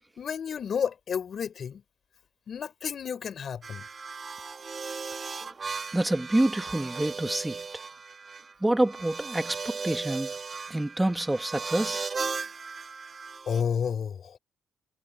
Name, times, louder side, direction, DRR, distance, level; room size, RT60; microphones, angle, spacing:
voice 1, 0.2-1.8 2.5-3.9 13.5-14.4, left 7 dB, 55° left, 7.3 m, -31 dB
sound 1, 3.6-13.6, right 5 dB, 35° right, 4.1 m, -37 dB
voice 2, 5.9-7.6 8.6-10.3 10.7-12.1, right 1 dB, 10° right, 3.2 m, -27 dB
cardioid pair, 90°, 0 cm